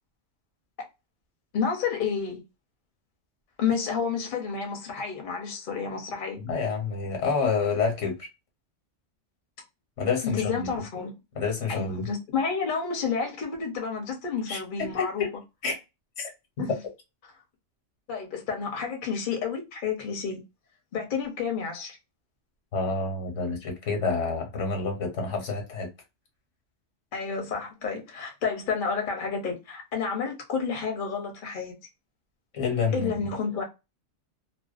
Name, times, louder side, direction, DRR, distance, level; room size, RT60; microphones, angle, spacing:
voice 1, 1.5-2.4 3.6-6.4 10.2-11.1 11.7-15.2 16.6-16.7 18.1-20.4 20.9-22.0 27.1-31.7 32.9-33.6, left 6 dB, 50° left, 0.8 m, -30 dB
voice 2, 6.4-8.3 10.0-10.7 11.3-12.1 14.5-15.3 15.6-15.7 16.2-16.3 16.6-16.7 22.7-25.9 32.5-33.3, left 4 dB, 85° left, 1.3 m, -28 dB
2.5 x 2.2 x 2.3 m
omnidirectional pair, 1.2 m